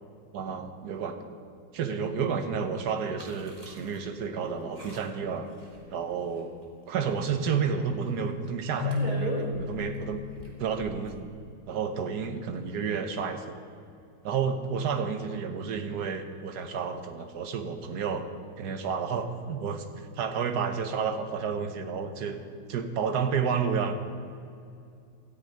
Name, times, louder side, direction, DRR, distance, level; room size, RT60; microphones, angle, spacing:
voice 1, 0.3-1.2 1.7-5.5 5.9-6.5 6.9-10.2 10.6-11.2 11.7-13.5 14.2-18.3 18.6-19.8 20.2-22.4 22.7-23.9, right 6 dB, 65° right, 7 dB, 1.4 m, -30 dB
sound 1, 3.2-4.0 4.4-4.5 4.8-5.2 5.6-6.0 6.3-6.9 7.3-7.4 7.6-7.7 8.2-8.5 8.9-11.2, right 1 dB, 20° right, 1.8 m, -39 dB
Keyboard (musical), 8.8-11.7, left 3 dB, 65° left, 1.1 m, -35 dB
13.5 x 6.5 x 9.0 m, 2.4 s
omnidirectional pair, 2.0 m